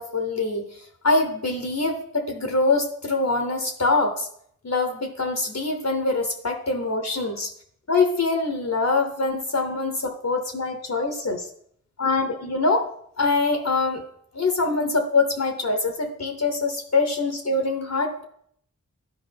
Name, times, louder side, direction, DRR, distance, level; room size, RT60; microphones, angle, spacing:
voice 1, 0.0-4.3 4.6-7.5 7.9-11.5 12.0-12.9 13.2-14.0 14.3-18.2, left 3 dB, 55° left, 4 dB, 0.9 m, -24 dB
11.5 x 4.9 x 3.4 m, 0.67 s
wide cardioid pair, 55°, 33 cm